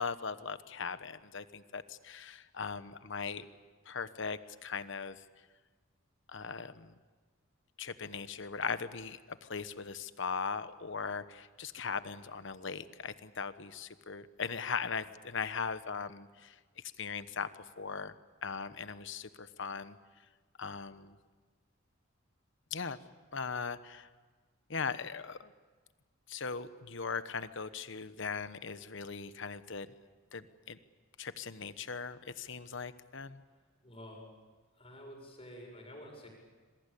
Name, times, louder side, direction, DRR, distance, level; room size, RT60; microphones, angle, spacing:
voice 1, 0.0-3.5 3.9-5.2 6.3-7.0 7.8-16.6 17.0-17.5 17.8-18.1 18.4-20.0 20.6-21.2 22.7-23.0 23.3-24.1 24.7-25.5 26.3-29.9 30.3-30.8 31.2-33.4, left 5 dB, 65° left, 12 dB, 1.1 m, -39 dB
voice 2, 33.5-34.2 34.8-36.3, equal, 30° left, 1 dB, 6.9 m, -50 dB
27.0 x 22.0 x 8.6 m, 1.4 s
head